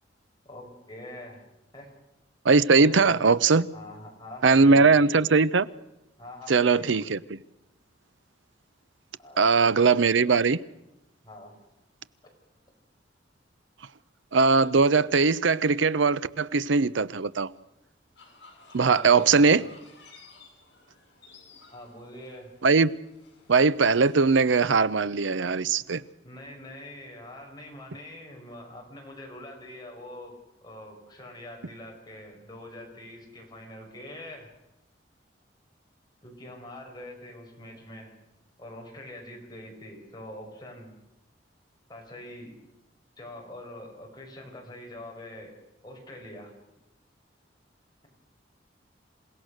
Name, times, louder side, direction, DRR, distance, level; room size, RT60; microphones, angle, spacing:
voice 1, 0.5-1.4 1.7-1.9 2.7-3.3 3.7-5.3 6.2-7.0 9.2-9.8 11.2-11.5 18.8-19.7 21.7-22.5 26.2-34.5 36.2-38.1 38.6-41.0 41.9-42.5 43.2-45.5 45.8-46.5, left 1 dB, 25° left, 5.4 m, -44 dB
voice 2, 2.4-3.7 4.4-5.7 6.5-7.2 9.4-10.6 14.3-17.5 18.7-19.6 22.6-22.9 23.5-26.0, right 4 dB, 75° right, 0.7 m, -20 dB
sound 1, 18.1-24.7, left 4 dB, 65° left, 7.3 m, -55 dB
28.0 x 16.5 x 6.5 m
head